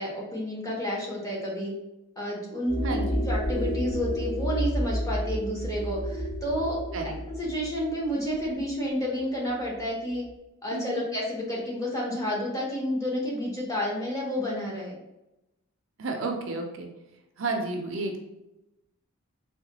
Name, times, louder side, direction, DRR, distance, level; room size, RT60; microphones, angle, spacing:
voice 1, 0.0-1.7 2.2-6.8 7.4-10.2 10.6-14.9, equal, 15° left, -4 dB, 0.8 m, -30 dB
sound 1, 2.7-9.2, equal, 70° left, 1.5 m, -31 dB
voice 2, 2.8-3.3 6.9-7.2 10.7-11.0 16.0-16.9 17.4-18.2, right 3 dB, 60° right, 3 dB, 0.4 m, -31 dB
3.8 x 2.2 x 2.8 m, 0.92 s
head